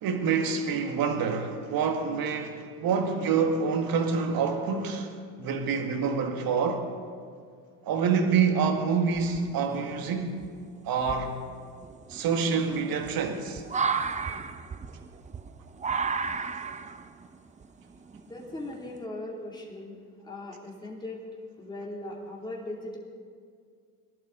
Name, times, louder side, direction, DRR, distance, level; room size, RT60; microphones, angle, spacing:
voice 1, 0.0-5.1 5.4-6.9 7.8-10.4 10.8-11.4 12.1-13.6 16.5-16.6, right 5 dB, 55° right, 1.8 m, -27 dB
sound 1, 9.1-9.7 10.4-10.5 11.0-19.0, right 5 dB, 15° right, 0.5 m, -33 dB
voice 2, 18.2-21.2 21.6-23.0, left 2 dB, 10° left, 2.9 m, -39 dB
19.5 x 11.5 x 3.9 m
hypercardioid pair, 80°, 43 cm